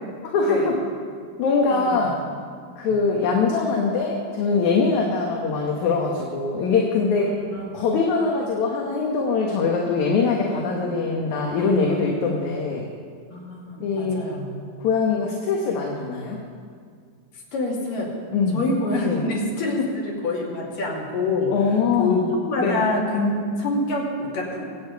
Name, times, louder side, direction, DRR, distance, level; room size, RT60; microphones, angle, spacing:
voice 1, 0.2-0.8 1.4-2.2 2.8-7.4 7.7-12.9 13.8-14.2 14.8-16.4 18.3-18.7 19.0-19.2 21.5-22.3 22.6-22.8, left 4 dB, 65° left, -1 dB, 2.5 m, -22 dB
voice 2, 1.7-2.1 2.8-3.0 7.5-7.7 11.5-12.0 13.3-14.5 17.5-18.1 18.5-21.5 22.0-24.7, left 2 dB, 85° left, -3 dB, 4.2 m, -26 dB
24.0 x 8.9 x 4.7 m, 2.1 s
omnidirectional pair, 3.8 m